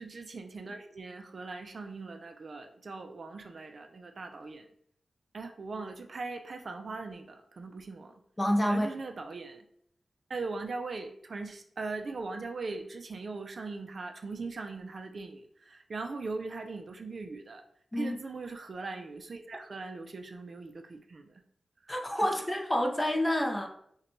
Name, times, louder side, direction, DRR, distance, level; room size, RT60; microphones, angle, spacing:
voice 1, 0.0-4.7 5.3-8.1 8.7-9.7 10.3-17.6 17.9-21.4 21.8-21.9 22.2-22.3, right 3 dB, 50° right, 6 dB, 0.3 m, -40 dB
voice 2, 8.4-8.9 17.9-18.2 21.9-23.7, left 1 dB, 15° left, 2 dB, 0.5 m, -28 dB
5.0 x 2.2 x 3.0 m, 0.68 s
wide cardioid pair, 120°, 0 cm